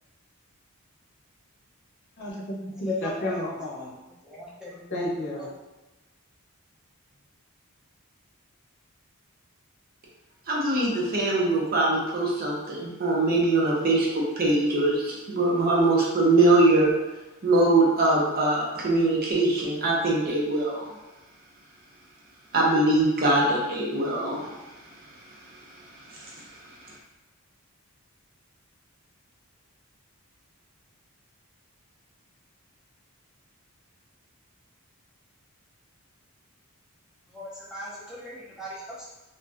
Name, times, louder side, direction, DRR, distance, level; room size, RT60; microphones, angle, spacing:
voice 1, 2.2-4.0 4.9-5.5, left 1 dB, 50° left, -5 dB, 0.8 m, -32 dB
voice 2, 2.8-3.4 4.2-4.9 5.4-5.5 37.3-39.1, left 1 dB, 5° right, -7 dB, 0.6 m, -38 dB
voice 3, 10.5-16.9 17.4-20.8 22.5-24.5, right 2 dB, 40° right, -3 dB, 0.6 m, -22 dB
2.5 x 2.3 x 3.3 m, 1.1 s
head